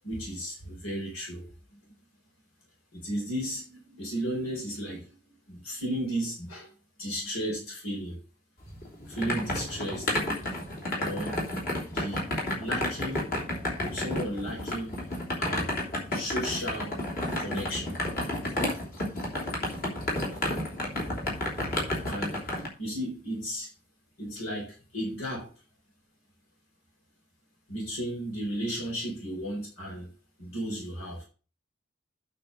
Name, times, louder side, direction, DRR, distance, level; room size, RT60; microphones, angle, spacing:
voice 1, 0.0-1.5 2.9-5.2 5.5-6.7 7.0-8.2 9.1-10.2 11.0-11.4 11.8-13.3 13.9-15.0 15.4-15.7 16.1-17.0 17.4-18.0 22.1-22.5 22.8-23.7 24.2-25.5 27.7-30.1 30.4-31.2, equal, 90° left, -1 dB, 4.2 m, -34 dB
sound 1, 8.7-22.7, left 1 dB, 45° left, 3.5 m, -31 dB
9.0 x 5.4 x 6.5 m, 0.35 s
head